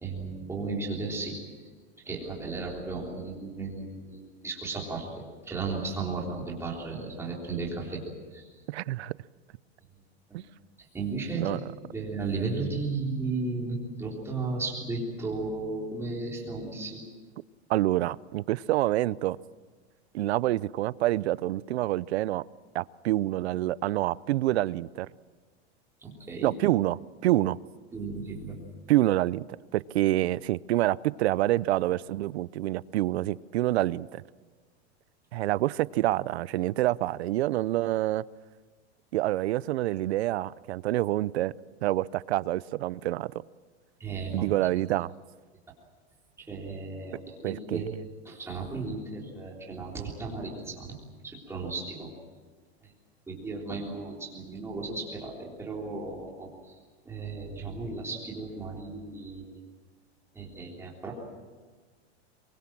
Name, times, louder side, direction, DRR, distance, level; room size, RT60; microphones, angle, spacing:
voice 1, 0.0-1.4 2.0-8.0 8.3-8.5 10.3-10.4 10.9-11.5 11.8-17.0 26.0-26.5 27.9-28.6 44.0-44.5 46.4-47.9 48.3-50.9 51.2-52.1 52.8-52.9 53.3-56.8 57.1-59.6 60.3-61.1, right 3 dB, 10° right, 3.6 m, -35 dB
voice 2, 8.7-9.1 10.3-10.4 11.3-11.6 17.7-19.4 20.1-22.4 22.7-25.1 26.4-27.6 28.9-29.4 29.7-34.2 35.3-38.2 39.1-41.5 41.8-43.3 44.3-45.1 47.4-47.9, right 15 dB, 70° right, 0.7 m, -27 dB
23.0 x 23.0 x 7.6 m
supercardioid pair, 175°, 33 cm